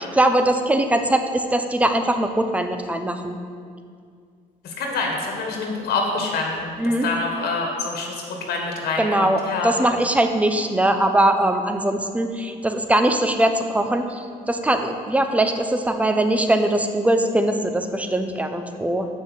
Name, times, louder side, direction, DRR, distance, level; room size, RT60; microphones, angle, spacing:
voice 1, 0.1-3.4 6.8-7.1 9.0-19.1, right 1 dB, 10° right, 6 dB, 0.7 m, -21 dB
voice 2, 4.6-8.2 8.5-9.7, left 3 dB, 70° left, 1 dB, 1.6 m, -26 dB
7.4 x 6.2 x 7.2 m, 2.2 s
cardioid pair, 110°, 17 cm